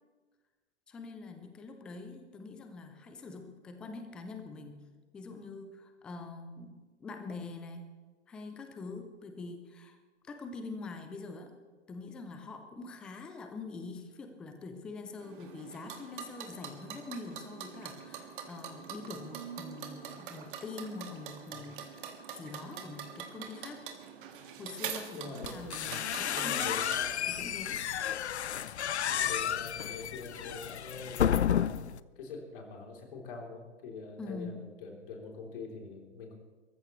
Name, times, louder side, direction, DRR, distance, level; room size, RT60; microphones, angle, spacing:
voice 1, 0.9-4.8 5.1-7.9 8.3-10.0 10.3-11.5 11.9-22.1 22.4-23.9 24.6-26.7 27.3-27.8 34.2-34.7, left 3 dB, 5° left, 6 dB, 0.3 m, -44 dB
sound 1, 15.2-27.1, right 8 dB, 45° right, 2.0 m, -44 dB
voice 2, 25.1-25.6 26.3-27.5 29.1-31.4 32.2-36.3, left 4 dB, 50° left, 1 dB, 3.4 m, -44 dB
sound 2, 25.4-32.0, left 9 dB, 75° left, 0.6 m, -32 dB
22.5 x 14.5 x 3.1 m, 1.4 s
figure-of-eight pair, 120°, 34 cm